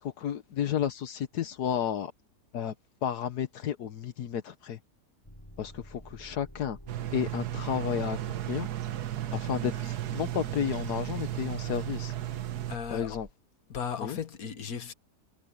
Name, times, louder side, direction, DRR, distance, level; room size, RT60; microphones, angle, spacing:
voice 1, 0.0-2.1 2.5-2.7 3.0-4.8 5.6-6.8 7.1-8.2 8.5-8.7 9.3-12.1 12.9-13.3 14.0-14.2, left 9 dB, 80° left, 1.6 m, -32 dB
sound 1, 5.2-13.3, equal, 15° left, 7.9 m, -49 dB
sound 2, 6.9-12.8, right 14 dB, 90° right, 1.5 m, -34 dB
voice 2, 12.7-13.2 13.7-14.9, left 7 dB, 65° left, 2.0 m, -36 dB
omnidirectional pair, 1.7 m